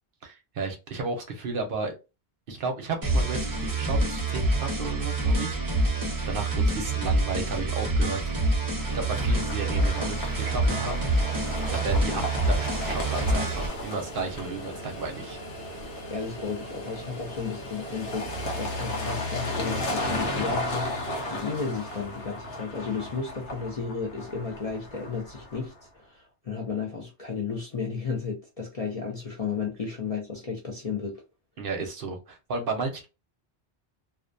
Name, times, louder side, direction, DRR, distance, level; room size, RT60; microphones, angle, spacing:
voice 1, 0.2-1.9 2.5-8.4 8.7-15.4 31.6-33.1, right 3 dB, 60° right, 0.7 m, -33 dB
sound 1, 3.0-13.7, right 2 dB, 25° right, 0.5 m, -26 dB
sound 2, 8.8-25.8, left 1 dB, 80° left, 1.0 m, -34 dB
voice 2, 16.1-31.2, left 5 dB, 50° left, 0.4 m, -33 dB
2.4 x 2.1 x 2.5 m
omnidirectional pair, 1.1 m